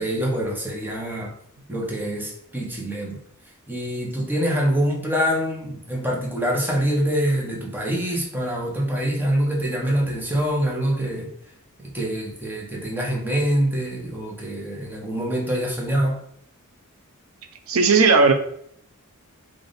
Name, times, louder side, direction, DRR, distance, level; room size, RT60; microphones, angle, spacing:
voice 1, 0.0-1.3 1.7-3.2 3.7-11.3 11.9-16.2, equal, 10° right, -2 dB, 0.8 m, -25 dB
voice 2, 17.7-18.3, right 4 dB, 70° right, 6 dB, 0.5 m, -15 dB
3.4 x 2.4 x 3.9 m, 0.69 s
head